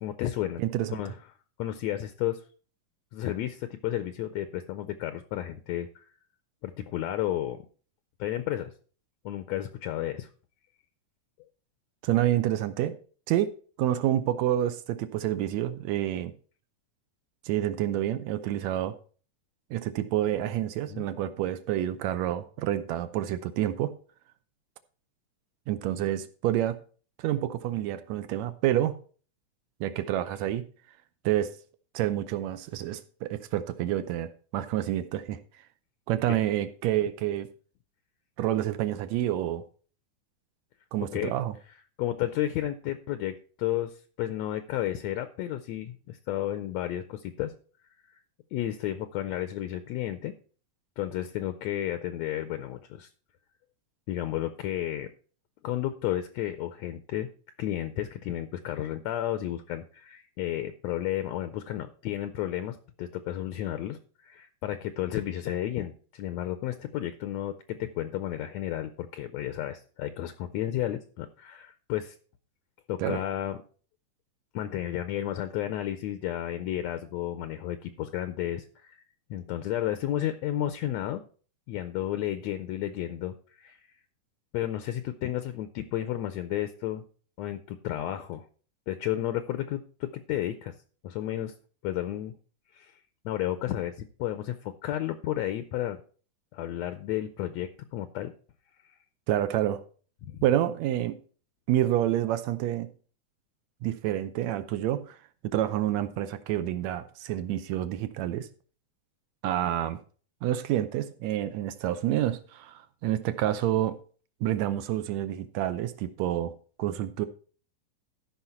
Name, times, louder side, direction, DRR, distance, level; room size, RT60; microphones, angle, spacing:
voice 1, 0.0-0.6 0.9-1.2 1.6-2.4 3.1-6.1 6.6-7.6 8.2-8.7 9.2-10.3 20.9-21.1 41.1-41.3 42.0-47.5 48.5-50.3 51.0-53.1 54.1-55.1 55.6-57.3 57.6-72.1 72.9-73.6 74.5-79.0 79.3-81.2 81.7-83.9 84.5-87.0 87.4-88.4 88.9-90.7 91.0-91.5 91.8-92.3 92.7-93.0 93.2-96.0 96.5-98.3 100.2-100.4, left 12 dB, 75° left, 1.7 m, -32 dB
voice 2, 0.6-1.0 12.0-12.9 13.3-13.5 13.8-16.3 17.5-18.9 19.7-23.9 25.7-26.8 27.2-29.0 29.8-30.6 31.3-31.5 31.9-35.4 36.1-37.5 38.4-39.6 40.9-41.5 73.0-73.2 99.3-99.8 100.4-101.2 101.7-102.9 103.8-105.2 105.4-108.5 109.4-110.0 110.4-114.0 114.4-116.5 116.8-117.3, right 12 dB, 75° right, 1.7 m, -28 dB
14.0 x 5.7 x 4.3 m
omnidirectional pair, 3.6 m